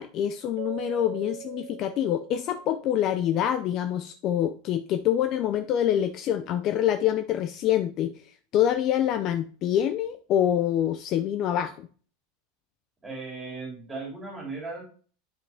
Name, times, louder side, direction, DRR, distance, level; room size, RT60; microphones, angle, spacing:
voice 1, 0.0-8.1 8.5-11.9, left 10 dB, 30° left, 9 dB, 0.4 m, -26 dB
Keyboard (musical), 0.6-3.0, right 22 dB, 60° right, 1.0 m, -42 dB
voice 2, 13.0-14.8, right 3 dB, 10° right, -2 dB, 2.9 m, -37 dB
9.9 x 5.2 x 3.4 m, 0.42 s
supercardioid pair, 175°, 0 cm